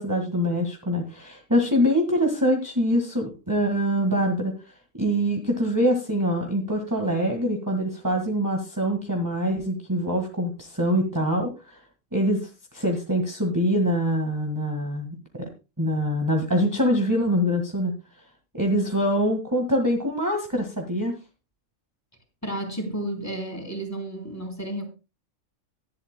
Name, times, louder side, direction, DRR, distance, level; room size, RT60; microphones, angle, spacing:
voice 1, 0.0-4.5 5.0-11.8 12.1-15.5 15.8-17.9 18.5-21.1, equal, 15° right, 1.7 m, -24 dB
voice 2, 22.4-24.9, right 1 dB, 15° left, 3.4 m, -32 dB
18.0 x 11.5 x 2.2 m
omnidirectional pair, 1.3 m